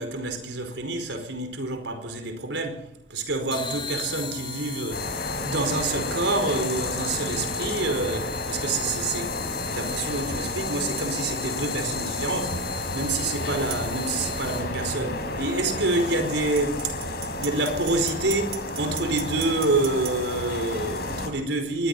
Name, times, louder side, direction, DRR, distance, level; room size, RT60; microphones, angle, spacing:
voice 1, 0.0-5.1 5.4-9.4 9.7-12.7 12.9-16.9 17.4-21.9, right 2 dB, 90° right, 4.9 m, -27 dB
sound 1, 3.5-14.9, left 5 dB, 30° left, 5.0 m, -38 dB
sound 2, 4.9-21.3, left 2 dB, 60° left, 4.9 m, -31 dB
sound 3, 11.0-11.1 13.7-13.9 16.6-20.2, right 12 dB, 55° right, 2.3 m, -38 dB
25.0 x 21.0 x 5.7 m
head